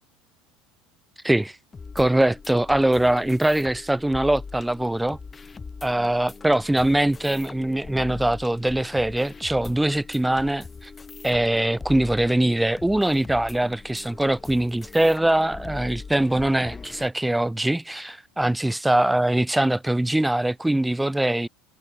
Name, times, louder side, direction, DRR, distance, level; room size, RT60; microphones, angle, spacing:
voice 1, 1.2-1.6 2.0-5.2 5.8-10.9 11.2-21.5, right 1 dB, 5° right, 0.3 m, -22 dB
sound 1, 1.7-17.1, left 4 dB, 25° left, 0.8 m, -41 dB
hypercardioid pair, 80°, 0 cm